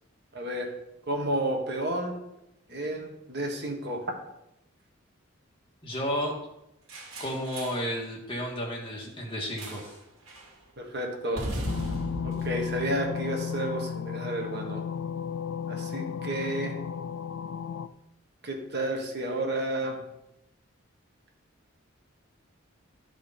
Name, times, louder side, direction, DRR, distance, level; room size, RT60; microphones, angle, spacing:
voice 1, 0.3-0.7 1.1-2.1 2.7-4.1 10.8-11.5 12.2-14.9 15.7-16.7 18.4-20.0, right 1 dB, 50° right, 2 dB, 1.5 m, -31 dB
voice 2, 5.8-6.3 7.2-9.9, equal, 25° left, -2 dB, 1.8 m, -32 dB
sound 1, 6.9-7.9 9.6-10.0 10.3-10.5 11.3-13.7, equal, 75° right, 2.2 m, -37 dB
sound 2, 11.6-17.9, left 7 dB, 70° left, 0.4 m, -34 dB
12.5 x 5.0 x 4.3 m, 0.85 s
head